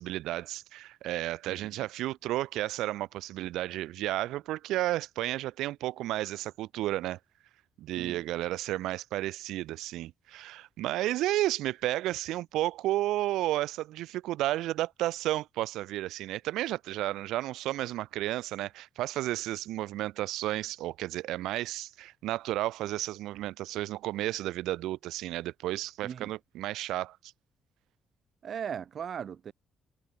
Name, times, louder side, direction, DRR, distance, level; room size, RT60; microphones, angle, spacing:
voice 1, 0.0-7.2 7.8-27.2, right 15 dB, 90° right, 3.7 m, -32 dB
voice 2, 1.5-1.9 8.0-8.2 26.0-26.3 28.4-29.5, right 8 dB, 55° right, 4.0 m, -38 dB
cardioid pair, 90°, 0 cm